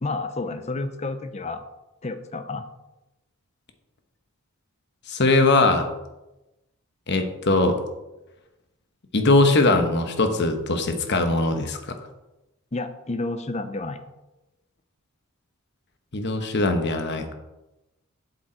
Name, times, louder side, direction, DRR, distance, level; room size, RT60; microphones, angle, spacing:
voice 1, 0.0-1.7 2.0-2.6 12.7-14.0, left 2 dB, 30° left, 9 dB, 0.6 m, -30 dB
voice 2, 5.1-5.9 7.1-7.8 9.1-12.0 16.1-17.2, left 2 dB, 50° left, 6 dB, 1.0 m, -21 dB
7.7 x 7.1 x 4.4 m, 0.99 s
head